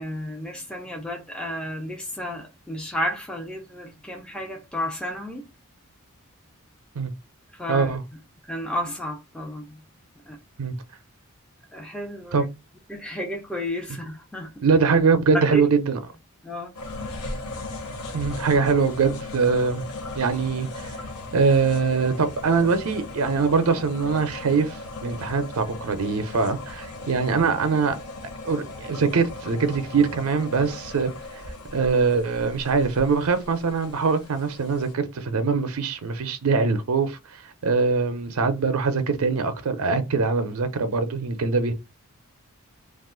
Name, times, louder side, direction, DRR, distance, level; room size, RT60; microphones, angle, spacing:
voice 1, 0.0-5.4 7.5-8.0 8.4-9.8 10.3-10.4 11.7-12.5 12.9-14.5 15.3-15.7 16.4-17.1, equal, 5° left, 0.5 m, -32 dB
voice 2, 7.7-8.0 10.6-10.8 12.3-12.4 14.6-16.0 18.1-19.8 20.1-21.0 21.3-28.0 28.4-31.4 31.7-41.7, right 4 dB, 75° right, 0.5 m, -23 dB
sound 1, 16.7-34.9, left 2 dB, 80° left, 0.8 m, -37 dB
2.4 x 2.3 x 3.6 m
head